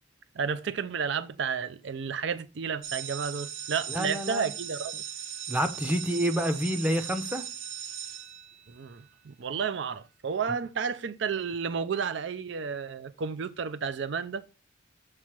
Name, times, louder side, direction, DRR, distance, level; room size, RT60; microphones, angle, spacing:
voice 1, 0.3-5.0 8.7-14.4, right 6 dB, 60° right, 0.4 m, -32 dB
sound 1, 2.8-9.0, right 8 dB, 80° right, 0.8 m, -38 dB
voice 2, 3.9-4.4 5.5-7.4, equal, 5° right, 0.6 m, -28 dB
7.2 x 3.2 x 5.8 m
head